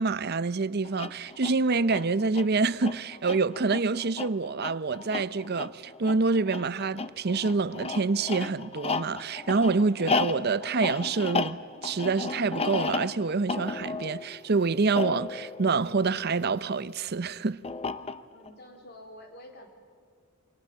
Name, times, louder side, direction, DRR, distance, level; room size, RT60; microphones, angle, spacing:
voice 1, 0.0-17.6, right 4 dB, 50° right, 0.7 m, -27 dB
sound 1, 0.8-16.6 17.6-18.5, left 4 dB, 30° left, 0.8 m, -34 dB
voice 2, 18.3-19.7, left 1 dB, 50° left, 4.2 m, -48 dB
29.5 x 24.5 x 7.6 m
head